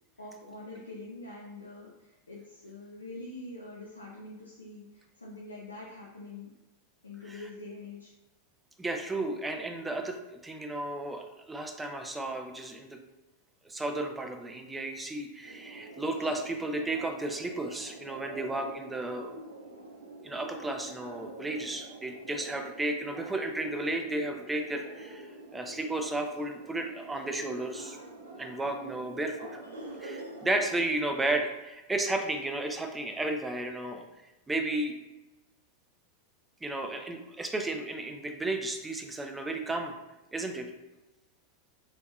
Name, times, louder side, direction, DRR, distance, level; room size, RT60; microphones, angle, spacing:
voice 1, 0.2-1.9 2.3-4.8 5.2-6.5 7.0-8.1, left 2 dB, 80° left, -4 dB, 0.5 m, -44 dB
voice 2, 8.8-13.0 13.6-19.4 20.2-28.0 28.4-29.5 30.0-34.1 34.5-35.0 36.6-39.9 40.3-40.7, right 2 dB, 10° right, 5 dB, 0.4 m, -33 dB
sound 1, 15.4-30.7, right 2 dB, 65° right, 0.7 m, -45 dB
3.4 x 3.1 x 2.3 m, 1.0 s
figure-of-eight pair, 90°, 0 cm